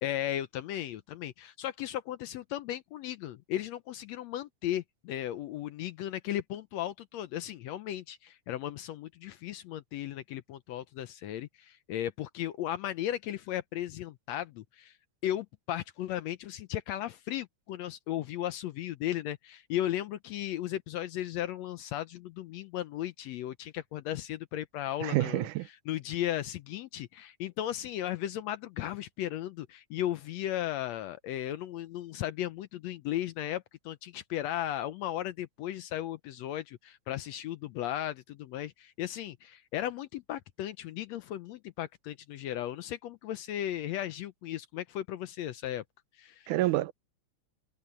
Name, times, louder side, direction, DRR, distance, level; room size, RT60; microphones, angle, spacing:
voice 1, 0.0-15.0 15.2-45.8 46.2-46.6, left 12 dB, 75° left, 1.7 m, -36 dB
voice 2, 25.0-25.7 46.5-46.9, right 17 dB, 85° right, 2.2 m, -28 dB
omnidirectional pair, 3.5 m